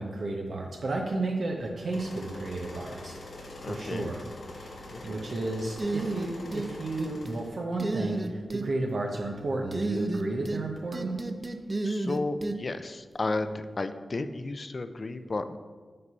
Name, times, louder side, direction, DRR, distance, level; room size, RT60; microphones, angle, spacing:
voice 1, 0.0-3.2 3.6-4.3 4.5-11.2, right 2 dB, 70° right, 0 dB, 0.7 m, -33 dB
sound 1, 1.9-7.5, left 2 dB, 85° left, 1.3 m, -44 dB
voice 2, 3.6-4.1 4.9-5.3 11.8-15.6, left 2 dB, 50° left, 10 dB, 0.4 m, -33 dB
sound 2, 5.8-6.7 7.0-7.4 7.8-8.7 9.7-10.6 10.9-12.6, right 2 dB, 35° right, 0.5 m, -31 dB
5.3 x 4.0 x 5.5 m, 1.5 s
cardioid pair, 50°, 0 cm